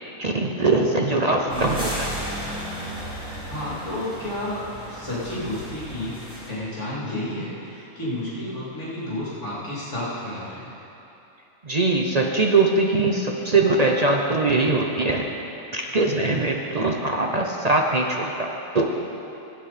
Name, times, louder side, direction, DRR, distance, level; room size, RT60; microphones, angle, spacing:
voice 1, 0.2-2.2 11.6-15.4 15.7-19.0, right 3 dB, 40° right, 1 dB, 0.6 m, -22 dB
voice 2, 1.4-1.7 3.4-4.6 4.9-6.2 6.5-10.7, left 1 dB, 55° left, -9 dB, 3.2 m, -31 dB
sound 1, 1.5-6.5, right 1 dB, 5° right, 2.4 m, -34 dB
17.5 x 8.6 x 4.3 m, 2.9 s
omnidirectional pair, 1.5 m